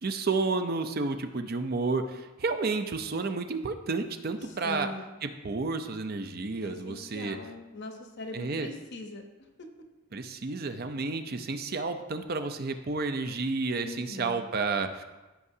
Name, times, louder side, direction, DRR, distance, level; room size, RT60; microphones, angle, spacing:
voice 1, 0.0-4.9 5.2-7.4 8.3-8.7 10.1-15.0, right 3 dB, 45° right, 7 dB, 0.5 m, -31 dB
voice 2, 4.6-5.1 6.6-9.2 13.8-14.5, left 2 dB, 55° left, 4 dB, 0.9 m, -41 dB
14.5 x 5.6 x 2.7 m, 1.1 s
head